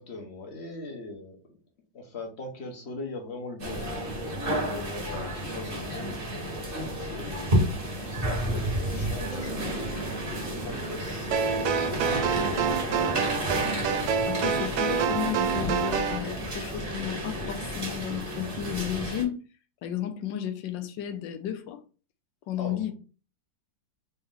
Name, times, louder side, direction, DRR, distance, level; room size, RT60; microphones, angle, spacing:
voice 1, 0.0-1.4 1.9-6.2 6.9-13.4 22.6-22.9, left 2 dB, 40° left, 1.1 m, -41 dB
sound 1, 3.6-19.2, right 1 dB, 30° right, 1.4 m, -31 dB
Guitar, 9.1-14.9, right 6 dB, 55° right, 0.8 m, -45 dB
sound 2, 11.3-16.2, right 7 dB, 75° right, 1.1 m, -27 dB
voice 2, 14.2-19.4 19.8-21.8 22.5-22.9, left 11 dB, 75° left, 1.3 m, -33 dB
4.1 x 3.0 x 3.7 m
omnidirectional pair, 2.0 m